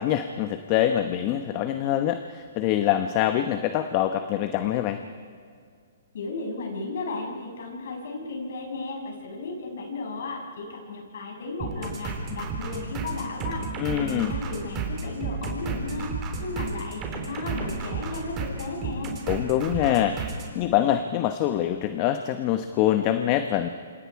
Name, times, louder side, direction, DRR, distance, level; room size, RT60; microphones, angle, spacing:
voice 1, 0.0-5.0 13.8-14.3 19.3-20.2 20.5-23.7, left 11 dB, 30° left, 8 dB, 1.0 m, -24 dB
voice 2, 6.1-13.6 13.9-16.1 16.4-19.1, left 3 dB, 65° left, 1 dB, 6.7 m, -34 dB
sound 1, 11.6-20.5, right 4 dB, 20° right, 3.7 m, -33 dB
27.5 x 25.5 x 4.8 m, 2.2 s
hypercardioid pair, 155°, 0 cm